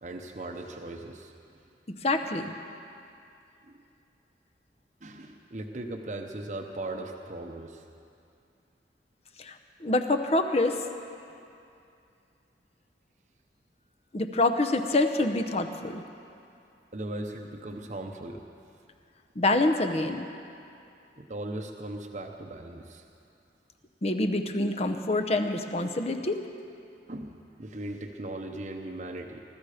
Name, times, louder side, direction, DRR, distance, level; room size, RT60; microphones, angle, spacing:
voice 1, 0.0-1.6 3.6-3.8 5.0-7.8 16.9-18.4 21.2-23.0 27.1-29.4, right 1 dB, 40° right, 3 dB, 0.9 m, -38 dB
voice 2, 2.0-2.5 9.4-10.9 14.1-16.0 19.4-20.3 24.0-26.5, left 2 dB, 35° left, 6 dB, 0.8 m, -26 dB
21.0 x 13.0 x 5.0 m, 2.6 s
head